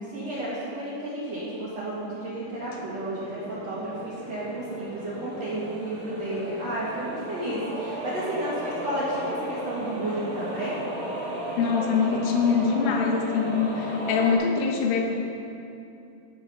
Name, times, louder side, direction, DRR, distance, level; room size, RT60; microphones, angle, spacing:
voice 1, 0.1-10.8, right 1 dB, 60° right, -8 dB, 1.7 m, -32 dB
sound 1, 2.1-14.3, right 1 dB, 5° left, 0.8 m, -35 dB
voice 2, 11.6-15.2, left 6 dB, 80° left, 1 dB, 3.6 m, -24 dB
15.5 x 7.2 x 5.4 m, 2.6 s
omnidirectional pair, 5.8 m